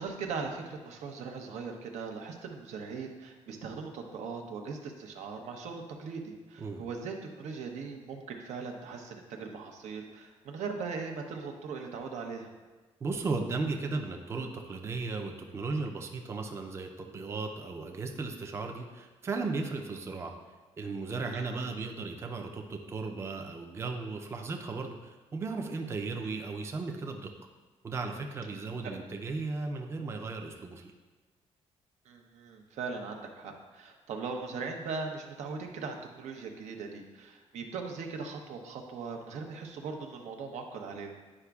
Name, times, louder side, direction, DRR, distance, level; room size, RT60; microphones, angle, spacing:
voice 1, 0.0-12.5 21.3-21.6 26.2-26.3 32.0-41.1, right 4 dB, 90° right, 3 dB, 0.8 m, -39 dB
voice 2, 13.0-20.3 20.8-27.3 27.8-30.9, right 3 dB, 25° right, 3 dB, 0.4 m, -36 dB
9.7 x 4.9 x 2.3 m, 1.3 s
cardioid pair, 175°, 12 cm